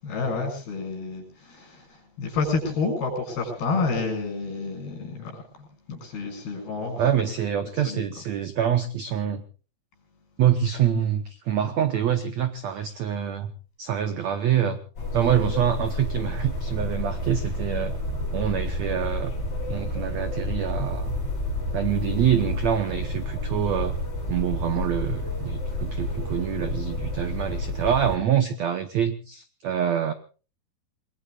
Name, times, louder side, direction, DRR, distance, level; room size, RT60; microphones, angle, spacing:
voice 1, 0.0-7.0 7.8-8.0, left 4 dB, 65° left, 5 dB, 8.5 m, -29 dB
voice 2, 7.0-9.4 10.4-13.5 13.8-14.8 15.1-17.9 18.3-19.3 19.7-21.1 21.7-24.0 24.3-30.1, right 9 dB, 90° right, 10 dB, 1.5 m, -25 dB
sound 1, 15.0-28.2, left 1 dB, 35° left, 8.4 m, -30 dB
28.5 x 20.0 x 2.4 m, 0.37 s
omnidirectional pair, 4.8 m